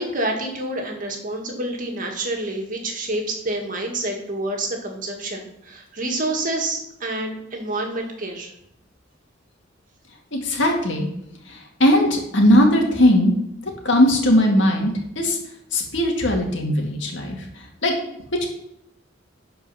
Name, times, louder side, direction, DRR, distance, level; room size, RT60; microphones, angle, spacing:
voice 1, 0.0-8.5, right 2 dB, 45° right, 2 dB, 1.9 m, -28 dB
voice 2, 10.3-11.1 11.5-13.3 13.6-15.4 15.7-17.9 18.4-18.5, left 1 dB, 70° left, 1 dB, 2.1 m, -19 dB
11.5 x 4.6 x 5.7 m, 0.79 s
head